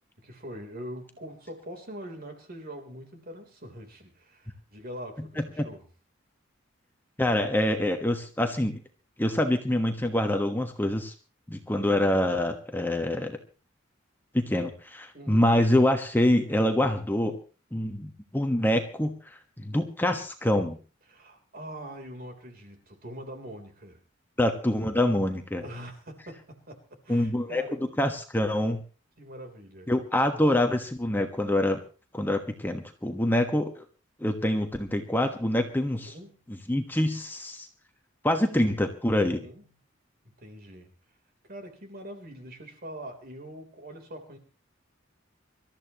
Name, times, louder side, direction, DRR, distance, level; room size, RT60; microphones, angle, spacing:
voice 1, 0.2-5.9 15.1-15.6 21.1-24.0 25.6-27.9 29.2-29.9 35.9-36.4 39.2-39.7 40.2-40.9 41.5-44.4, equal, 50° right, 4 dB, 3.6 m, -43 dB
voice 2, 7.2-8.8 9.2-11.1 11.5-13.4 14.3-17.4 17.7-19.2 19.6-20.8 24.4-25.6 27.1-27.6 28.0-28.8 29.9-31.8 32.1-33.8 34.2-36.1 36.7-37.7 38.2-39.4, left 1 dB, 10° left, 5 dB, 1.3 m, -25 dB
25.5 x 13.5 x 3.0 m, 0.35 s
head